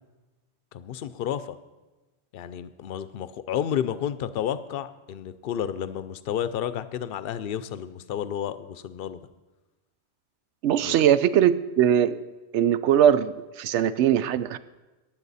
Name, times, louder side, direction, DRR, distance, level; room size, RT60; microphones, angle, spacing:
voice 1, 0.7-1.6 2.3-9.2 10.8-10.9, left 9 dB, 60° left, 13 dB, 0.7 m, -31 dB
voice 2, 10.6-12.2 12.5-14.6, right 10 dB, 80° right, 15 dB, 0.9 m, -21 dB
15.5 x 10.0 x 4.1 m, 1.1 s
omnidirectional pair, 1.2 m